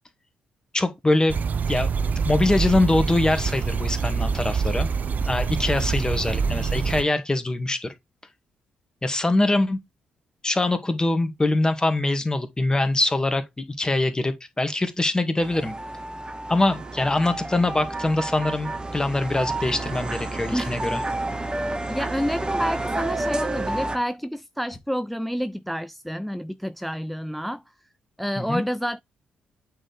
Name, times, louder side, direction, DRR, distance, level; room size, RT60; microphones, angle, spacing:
voice 1, 0.7-1.4 1.7-1.9 2.2-4.9 5.3-7.9 9.0-9.8 10.4-15.7 16.5-21.0 28.4-28.6, left 2 dB, 20° left, 1.9 m, -23 dB
sound 1, 1.3-7.0, right 5 dB, 50° right, 0.7 m, -25 dB
sound 2, 15.4-24.0, right 2 dB, 25° right, 1.6 m, -30 dB
voice 2, 21.8-27.6 28.2-29.0, equal, ahead, 0.4 m, -29 dB
8.6 x 4.5 x 3.4 m
hypercardioid pair, 40°, 4 cm